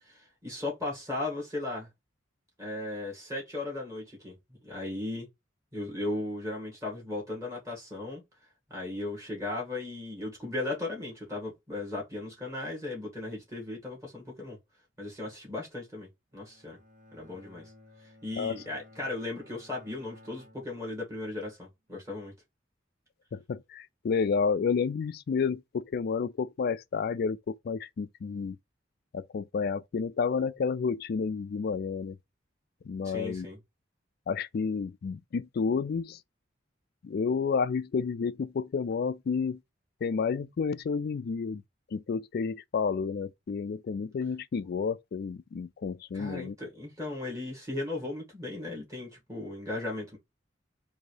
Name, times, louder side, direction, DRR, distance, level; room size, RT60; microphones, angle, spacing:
voice 1, 0.0-1.9 2.6-4.3 4.6-5.3 5.7-8.2 8.7-14.6 15.0-16.8 17.1-17.6 18.0-22.3 33.0-33.6 46.1-50.2, left 2 dB, 15° right, 2.0 m, -36 dB
Bowed string instrument, 16.3-21.6, left 1 dB, 45° right, 1.3 m, -56 dB
voice 2, 23.3-28.6 29.1-32.2 32.9-33.5 34.3-36.2 37.0-39.6 40.0-41.6 41.9-46.5, left 5 dB, 55° left, 0.3 m, -30 dB
3.9 x 2.7 x 4.7 m
head